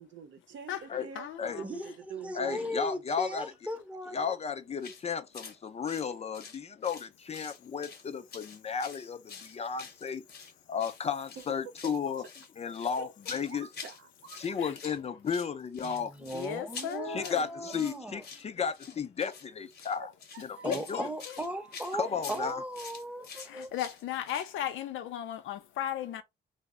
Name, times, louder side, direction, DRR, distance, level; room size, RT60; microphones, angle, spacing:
voice 1, 0.0-1.3 1.6-3.0 11.4-11.5 11.8-12.3 13.4-14.4 20.0-20.1 20.3-22.1, right 7 dB, 70° right, 0.7 m, -47 dB
voice 2, 0.7-1.7 13.0-13.1 14.6-14.8 16.2-17.5 20.6-21.4 23.4-26.2, left 10 dB, 80° left, 0.5 m, -36 dB
voice 3, 1.6-1.9 2.2-4.4 15.8-18.2 20.6-23.7, equal, 5° right, 0.6 m, -38 dB
voice 4, 2.4-3.5 4.1-10.2 10.7-12.2 12.6-13.7 14.4-16.1 17.1-20.1 20.4-21.0 21.9-22.6, left 6 dB, 35° left, 0.4 m, -34 dB
sound 1, 4.8-5.0 5.3-5.6 5.8-7.1 7.3-8.0 8.3-10.5 10.8-11.0 11.3-12.0 12.2-14.0 14.3-15.0 15.3-24.5, left 5 dB, 55° left, 0.8 m, -46 dB
2.0 x 2.0 x 3.5 m
cardioid pair, 90°, 20 cm